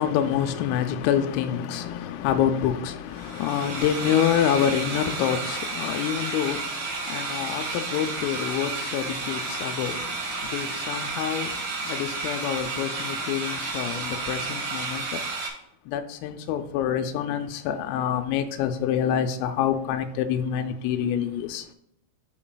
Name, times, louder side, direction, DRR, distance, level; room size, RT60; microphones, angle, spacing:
voice 1, 0.0-15.2 15.9-21.7, left 9 dB, 90° left, 3.2 m, -27 dB
sound 1, 3.1-15.5, right 3 dB, 90° right, 1.7 m, -32 dB
11.5 x 3.9 x 2.2 m
omnidirectional pair, 5.7 m